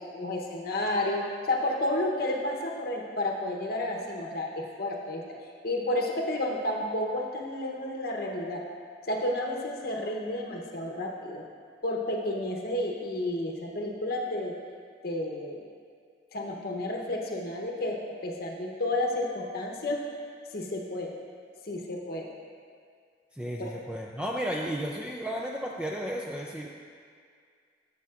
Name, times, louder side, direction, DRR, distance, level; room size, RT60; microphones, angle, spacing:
voice 1, 0.0-5.2 5.6-8.6 9.1-11.4 11.8-14.5 15.0-15.6 16.3-20.0 20.5-21.1 21.6-22.3 23.6-23.7, left 1 dB, 60° left, -1 dB, 0.8 m, -31 dB
voice 2, 23.3-26.7, equal, 5° right, -2 dB, 0.3 m, -33 dB
12.0 x 6.9 x 2.4 m, 2.1 s
head